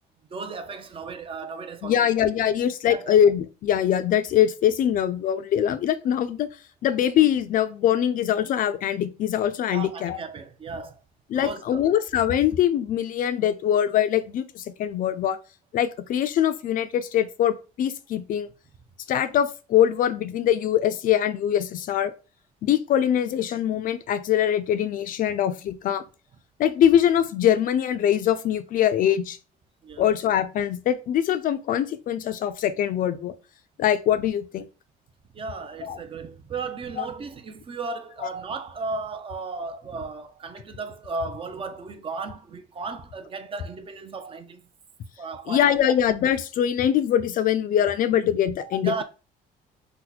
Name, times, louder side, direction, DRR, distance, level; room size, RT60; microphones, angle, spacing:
voice 1, 0.3-2.1 2.9-3.2 9.7-11.0 11.3-11.9 29.8-30.0 35.3-44.7 45.2-45.7 48.6-49.0, right 4 dB, 30° right, 0.5 m, -35 dB
voice 2, 1.8-6.5 6.8-10.2 11.3-15.4 15.7-18.5 19.1-22.1 22.6-26.0 26.6-29.4 30.0-33.3 33.8-34.7 35.8-36.0 37.0-37.1 45.5-49.0, left 10 dB, 55° left, 0.4 m, -23 dB
2.8 x 2.1 x 3.9 m
cardioid pair, 110°, 17 cm